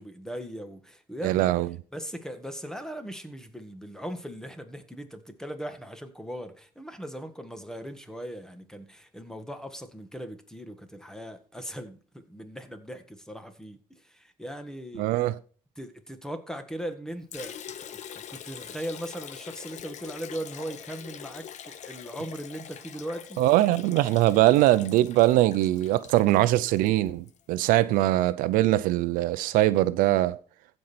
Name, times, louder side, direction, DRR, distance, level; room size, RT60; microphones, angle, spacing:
voice 1, 0.0-1.5 1.9-15.2 15.7-23.4, equal, 5° left, 1.6 m, -39 dB
voice 2, 1.2-1.7 15.0-15.3 23.4-30.4, right 16 dB, 85° right, 0.5 m, -22 dB
Liquid, 17.3-27.4, left 9 dB, 60° left, 1.0 m, -44 dB
15.5 x 5.4 x 4.3 m
cardioid pair, 95°, 14 cm